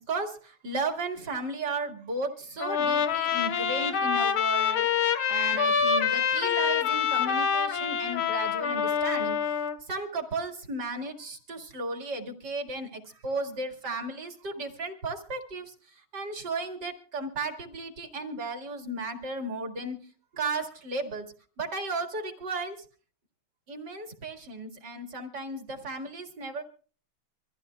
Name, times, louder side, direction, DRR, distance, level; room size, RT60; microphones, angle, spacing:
voice 1, 0.0-9.4 9.9-20.0 20.3-21.3 21.6-22.9 23.7-26.6, right 2 dB, 50° right, 4 dB, 2.5 m, -34 dB
Trumpet, 2.6-9.8, left 7 dB, 85° left, 1.8 m, -26 dB
25.0 x 14.5 x 2.2 m, 0.40 s
omnidirectional pair, 2.3 m